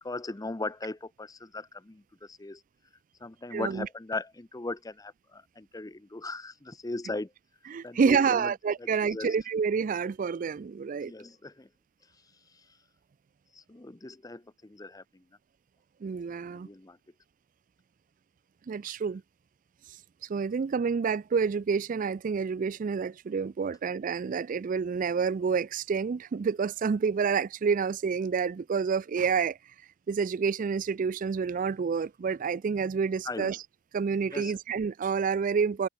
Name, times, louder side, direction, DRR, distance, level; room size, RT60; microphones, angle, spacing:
voice 1, 0.0-2.6 3.2-7.3 7.8-8.5 8.8-9.4 11.0-11.7 12.5-12.7 13.5-15.2 16.4-17.0 33.2-33.6 34.3-34.6, left 2 dB, 15° left, 0.6 m, -38 dB
voice 2, 3.5-3.9 7.7-11.1 16.0-16.7 18.7-19.2 19.9-29.6 30.1-33.6 33.9-35.9, right 5 dB, 40° right, 0.3 m, -28 dB
head